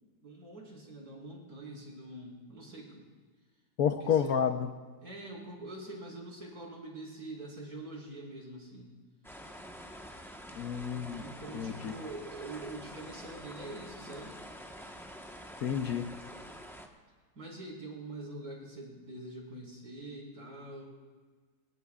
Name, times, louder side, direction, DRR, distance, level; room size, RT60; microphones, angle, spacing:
voice 1, 0.2-3.1 4.0-4.4 5.0-8.9 11.2-14.3 17.3-20.9, right 2 dB, 60° right, -4 dB, 5.2 m, -44 dB
voice 2, 3.8-4.7 10.6-11.2 11.5-11.9 15.6-16.1, left 8 dB, 65° left, 7 dB, 1.2 m, -30 dB
sound 1, 9.2-16.9, equal, ahead, 0.9 m, -47 dB
28.5 x 16.5 x 2.4 m, 1.4 s
omnidirectional pair, 1.8 m